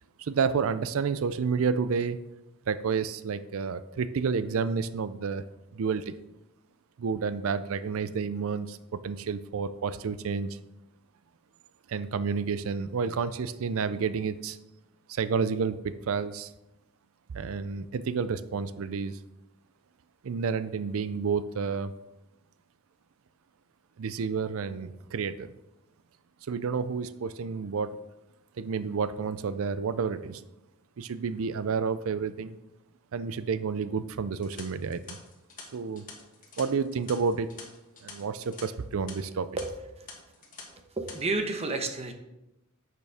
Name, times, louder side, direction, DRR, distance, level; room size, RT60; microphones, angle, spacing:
voice 1, 0.2-2.2 2.7-5.4 5.7-6.1 7.0-10.6 11.9-14.6 15.1-16.5 17.3-19.2 20.2-21.9 24.0-25.5 26.5-28.0 28.6-30.4 31.0-32.5 33.1-35.2 35.7-36.1 36.6-37.5 38.0-39.5, right 5 dB, 70° right, 13 dB, 0.4 m, -30 dB
sound 1, 34.3-38.6 38.9-39.1 39.6-39.7 40.1-40.6 40.9-41.2, left 5 dB, 40° left, 1.7 m, -46 dB
voice 2, 40.9-42.1, right 3 dB, 30° right, 6 dB, 1.0 m, -31 dB
10.0 x 6.7 x 3.5 m, 0.93 s
head